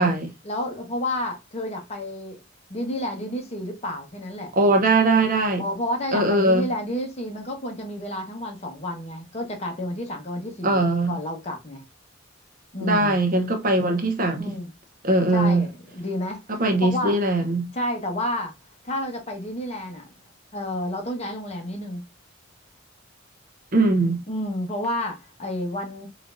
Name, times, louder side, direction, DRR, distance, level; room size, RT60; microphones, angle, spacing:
voice 1, 0.4-2.4 2.7-4.5 5.6-11.8 12.7-13.2 14.4-14.7 15.3-16.4 16.8-17.2 17.7-18.5 18.8-20.1 20.5-22.0 24.3-26.1, left 1 dB, 30° left, 1.1 m, -30 dB
voice 2, 4.5-5.6 6.1-6.7 10.6-11.1 12.8-14.5 15.0-15.6 16.6-17.7 23.7-24.2, right 2 dB, 45° right, 0.8 m, -20 dB
3.8 x 3.3 x 2.5 m
head